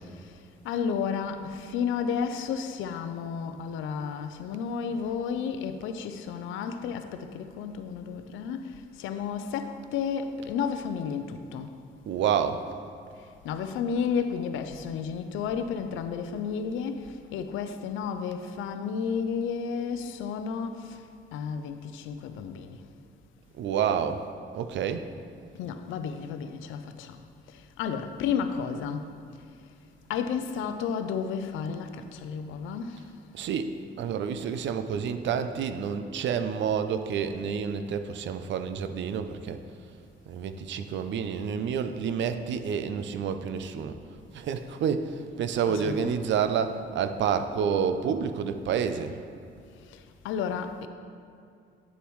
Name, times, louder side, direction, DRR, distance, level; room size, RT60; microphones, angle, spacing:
voice 1, 0.6-11.8 13.4-21.0 21.3-22.8 25.5-27.2 27.5-29.1 30.1-33.1 45.7-46.1 49.9-50.9, left 6 dB, 90° left, 9 dB, 0.5 m, -32 dB
voice 2, 12.1-12.7 23.6-24.3 24.5-25.1 33.3-33.7 34.0-39.6 40.3-44.0 44.3-49.2, right 7 dB, 70° right, 9 dB, 0.5 m, -29 dB
9.5 x 6.9 x 3.1 m, 2.4 s
cardioid pair, 90°, 20 cm